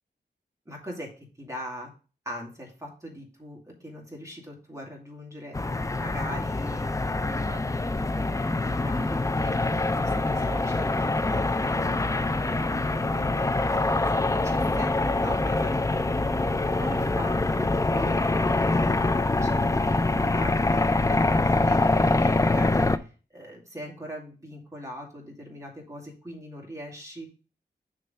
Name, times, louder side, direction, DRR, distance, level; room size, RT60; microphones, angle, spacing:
voice 1, 0.7-1.1 1.4-1.9 2.3-5.6 6.0-6.9 7.2-7.6 7.9-12.3 12.6-27.3, equal, 15° right, -2 dB, 2.4 m, -41 dB
sound 1, 5.5-23.0, left 2 dB, 20° left, 0.4 m, -25 dB
6.6 x 3.4 x 5.5 m, 0.36 s
cardioid pair, 60°, 18 cm